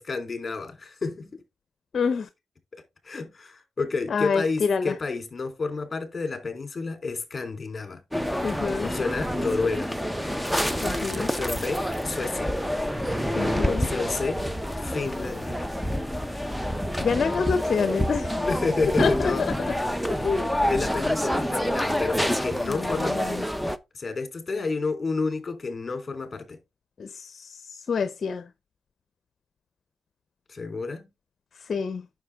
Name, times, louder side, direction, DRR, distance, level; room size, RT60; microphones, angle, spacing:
voice 1, 0.0-1.4 3.0-8.0 8.8-10.0 11.2-12.6 13.6-14.4 14.8-15.6 18.3-19.5 20.2-23.2 23.9-26.6 30.5-31.1, left 4 dB, 35° left, 3.4 m, -30 dB
voice 2, 1.9-2.3 4.1-4.9 8.4-8.9 10.8-11.3 13.3-13.9 17.0-18.4 19.0-19.5 20.1-20.5 22.7-22.9 23.2-23.3 27.0-27.6 27.9-28.4 31.7-32.0, left 5 dB, 55° left, 0.7 m, -26 dB
sound 1, 8.1-23.8, equal, ahead, 0.8 m, -27 dB
9.6 x 6.6 x 3.5 m
cardioid pair, 85°, 0 cm